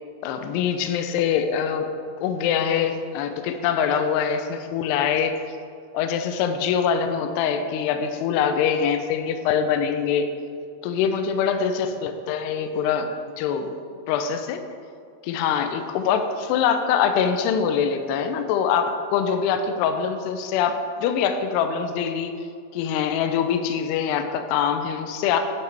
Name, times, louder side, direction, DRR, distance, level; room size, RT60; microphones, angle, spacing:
voice 1, 0.2-1.9 2.2-5.4 5.9-10.3 10.8-13.1 13.4-13.7 14.1-14.6 15.2-22.3 22.7-25.4, left 7 dB, 85° left, 7 dB, 2.3 m, -24 dB
9.6 x 7.4 x 4.6 m, 2.3 s
omnidirectional pair, 5.5 m